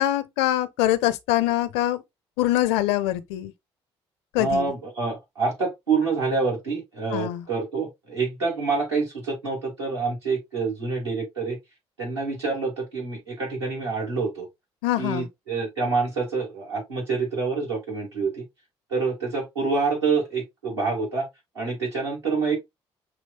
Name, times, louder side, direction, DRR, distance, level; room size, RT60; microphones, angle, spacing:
voice 1, 0.0-2.0 2.4-3.5 4.3-4.7 7.1-7.5 14.8-15.3, left 14 dB, 70° left, 0.6 m, -24 dB
voice 2, 4.3-11.6 12.0-14.5 15.0-18.4 18.9-21.3 21.5-22.6, right 4 dB, 90° right, 2.3 m, -27 dB
6.2 x 3.1 x 2.5 m
figure-of-eight pair, 45°, 14 cm